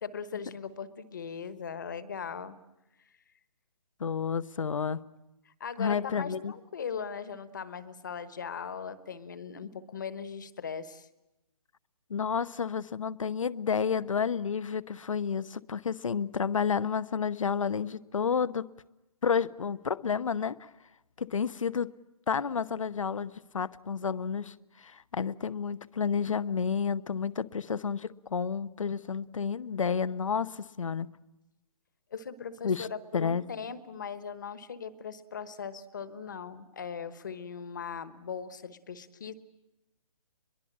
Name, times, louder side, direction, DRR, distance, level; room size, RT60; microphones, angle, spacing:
voice 1, 0.0-2.6 5.6-11.1 24.0-24.1 32.1-39.3, left 6 dB, 35° left, 1.2 m, -39 dB
voice 2, 4.0-5.0 5.8-6.5 12.1-18.7 19.2-20.7 21.2-21.9 22.3-31.1 32.6-32.9 33.1-33.4, left 6 dB, 65° left, 0.9 m, -30 dB
23.0 x 22.5 x 8.7 m
hypercardioid pair, 175°, 18 cm